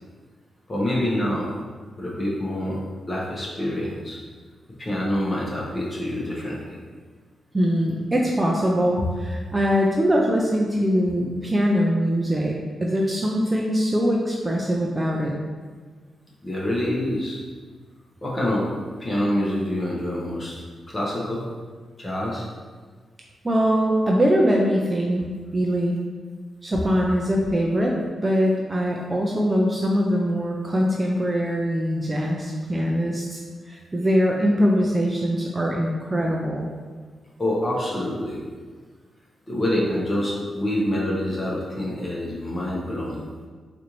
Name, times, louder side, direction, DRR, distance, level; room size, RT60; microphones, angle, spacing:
voice 1, 0.7-1.5 2.0-2.8 3.1-4.2 4.8-6.8 16.4-17.4 18.2-18.7 19.0-21.4 22.0-22.5 37.4-38.4 39.5-43.2, left 1 dB, 25° left, -5 dB, 0.8 m, -26 dB
voice 2, 7.5-12.5 12.8-15.3 23.4-25.2 25.5-26.0 26.6-27.9 28.2-33.4 33.7-36.7, equal, 15° right, -2 dB, 0.3 m, -22 dB
4.2 x 2.5 x 3.0 m, 1.5 s
wide cardioid pair, 135°, 0 cm